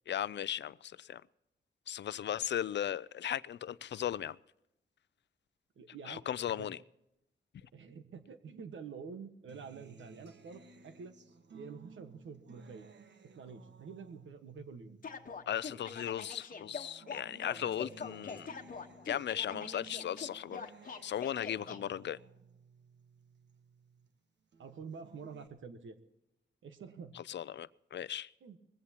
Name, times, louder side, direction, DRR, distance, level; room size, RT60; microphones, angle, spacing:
voice 1, 0.1-1.2 1.9-4.4 6.0-6.8 15.5-18.5 19.1-20.6 21.0-22.2 27.1-28.3, left 10 dB, 65° left, 0.4 m, -37 dB
voice 2, 5.8-6.8 7.7-11.1 11.5-12.9 13.3-15.0 24.6-25.9 26.6-27.2 28.4-28.6, right 5 dB, 90° right, 1.4 m, -48 dB
Acoustic guitar, 9.5-16.1 16.5-24.1 24.5-25.5, right 5 dB, 65° right, 1.4 m, -57 dB
sound 1, 15.0-21.8, left 5 dB, 45° left, 1.2 m, -44 dB
20.5 x 16.0 x 2.9 m
wide cardioid pair, 100°, 19 cm